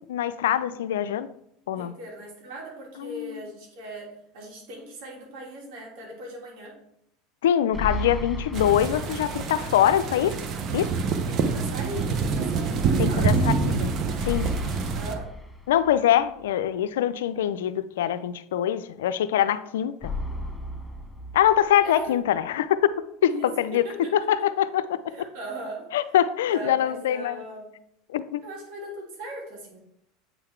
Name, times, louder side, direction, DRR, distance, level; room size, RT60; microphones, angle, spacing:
voice 1, 0.1-1.3 1.7-1.9 3.0-3.4 7.4-10.4 10.7-10.9 13.0-13.9 14.3-14.5 15.7-20.1 21.3-22.9 23.2-23.8 24.1-25.0 25.9-27.4 28.1-28.4, left 10 dB, 85° left, 13 dB, 0.4 m, -24 dB
voice 2, 1.7-6.8 11.3-13.3 14.0-14.5 14.9-15.3 21.8-22.2 23.3-23.5 23.7-24.3 25.1-25.9 26.4-27.7 28.4-29.8, right 1 dB, 70° right, -2 dB, 3.0 m, -39 dB
sound 1, 7.7-9.8 10.1-10.2 14.2-16.2 20.0-22.0, left 1 dB, 5° left, 0.9 m, -34 dB
sound 2, 8.5-15.1, right 4 dB, 45° right, 0.9 m, -26 dB
8.0 x 3.9 x 4.5 m, 0.77 s
supercardioid pair, 110°, 0 cm